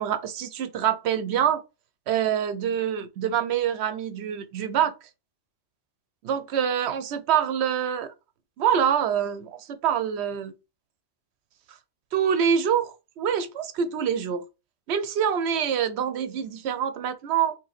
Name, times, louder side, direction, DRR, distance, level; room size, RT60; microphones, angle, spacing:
voice 1, 0.0-1.6 2.1-4.9 6.2-8.1 8.6-10.5 12.1-14.4 14.9-17.6, right 8 dB, 65° right, 0.8 m, -25 dB
2.9 x 2.6 x 4.0 m
omnidirectional pair, 1.3 m